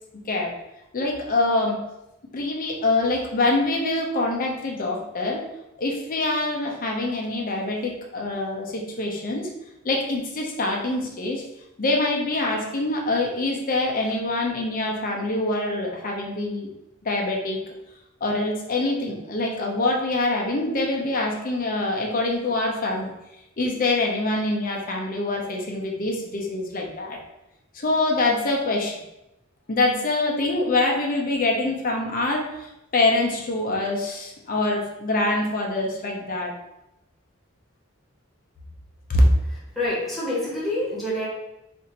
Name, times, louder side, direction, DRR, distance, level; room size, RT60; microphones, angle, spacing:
voice 1, 0.1-0.5 0.9-1.8 2.3-5.4 5.8-9.5 9.8-11.4 11.8-16.7 17.0-17.6 18.2-23.1 23.6-27.2 27.7-29.0 29.7-36.5 39.1-39.2, left 2 dB, 40° left, 0 dB, 0.6 m, -25 dB
voice 2, 39.7-41.3, left 1 dB, ahead, -8 dB, 1.1 m, -26 dB
2.7 x 2.5 x 4.1 m, 0.89 s
head